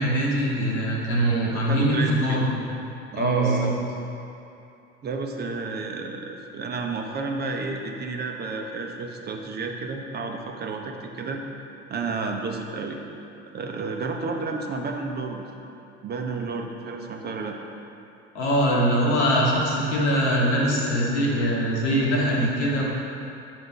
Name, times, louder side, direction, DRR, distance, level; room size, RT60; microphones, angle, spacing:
voice 1, 0.0-2.4 3.1-3.7 18.3-22.8, equal, 75° left, -4 dB, 1.5 m, -22 dB
voice 2, 1.5-2.4 3.1-3.8 5.0-11.4 11.9-13.0 13.5-15.4 16.0-17.6, right 4 dB, 30° right, 2 dB, 0.7 m, -31 dB
7.8 x 5.1 x 3.8 m, 2.7 s
figure-of-eight pair, 65°, 34 cm